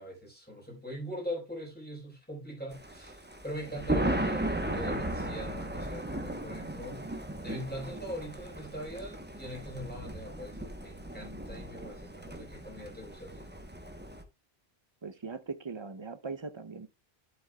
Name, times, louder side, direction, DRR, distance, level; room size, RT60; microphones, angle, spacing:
voice 1, 0.0-7.1 7.4-13.5, equal, 10° left, 4.1 m, -42 dB
Thunder, 2.7-14.2, right 1 dB, 10° right, 0.9 m, -36 dB
voice 2, 15.0-16.9, right 4 dB, 35° right, 0.6 m, -40 dB
11.5 x 7.7 x 2.3 m
omnidirectional pair, 1.1 m